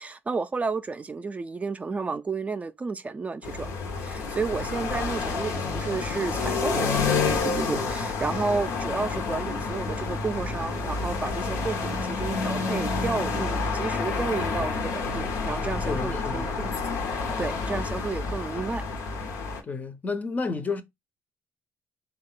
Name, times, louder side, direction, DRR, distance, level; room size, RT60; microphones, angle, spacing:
voice 1, 0.0-3.7 3.9-16.7 17.4-18.8, right 4 dB, 25° right, 0.4 m, -32 dB
sound 1, 3.4-19.6, left 4 dB, 85° left, 0.8 m, -29 dB
voice 2, 15.8-16.5 19.6-20.8, left 4 dB, 30° left, 0.6 m, -31 dB
3.6 x 2.3 x 3.7 m
cardioid pair, 80°, 5 cm